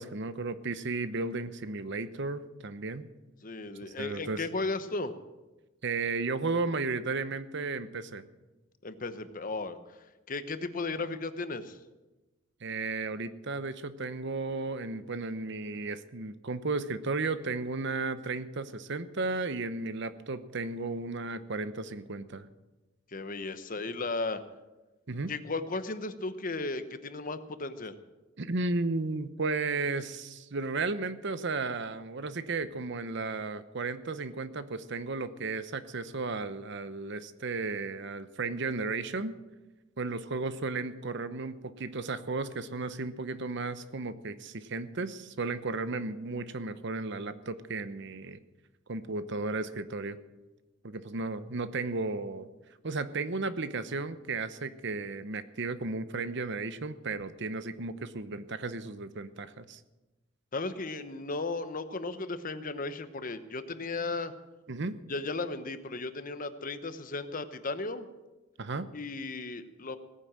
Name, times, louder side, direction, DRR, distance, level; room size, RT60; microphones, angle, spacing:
voice 1, 0.0-3.1 4.0-4.4 5.8-8.2 12.6-22.5 25.1-25.3 28.4-39.3 40.0-48.4 48.9-50.2 50.8-52.5 52.8-59.8 64.7-65.0 68.6-68.9, right 3 dB, 60° right, 12 dB, 0.9 m, -34 dB
voice 2, 3.4-5.1 8.8-9.8 10.3-11.8 23.1-24.4 25.3-27.9 60.5-64.3 65.1-68.1 68.9-70.0, left 3 dB, 45° left, 11 dB, 1.0 m, -35 dB
18.0 x 9.8 x 7.5 m, 1.1 s
head